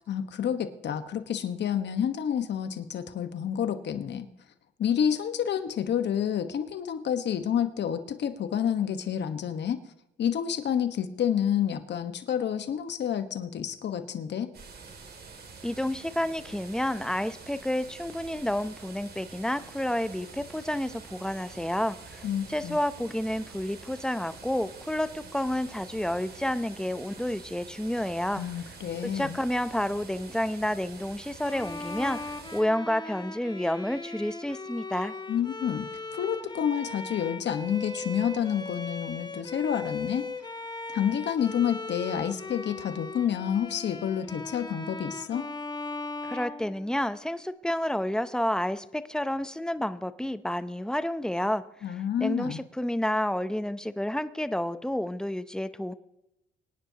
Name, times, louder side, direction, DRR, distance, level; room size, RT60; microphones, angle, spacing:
voice 1, 0.1-4.3 4.8-9.8 10.2-14.5 22.2-22.8 28.4-29.4 35.3-35.9 36.1-40.3 40.9-45.5 51.8-52.6, left 9 dB, 60° left, 9 dB, 1.3 m, -29 dB
sound 1, 14.5-32.6, right 4 dB, 50° right, 2.6 m, -47 dB
voice 2, 15.6-28.4 29.0-35.1 46.2-55.9, left 1 dB, 5° left, 13 dB, 0.7 m, -30 dB
Bowed string instrument, 31.4-47.3, left 3 dB, 20° left, 1.2 m, -38 dB
24.5 x 10.0 x 2.9 m, 0.89 s
cardioid pair, 90°, 20 cm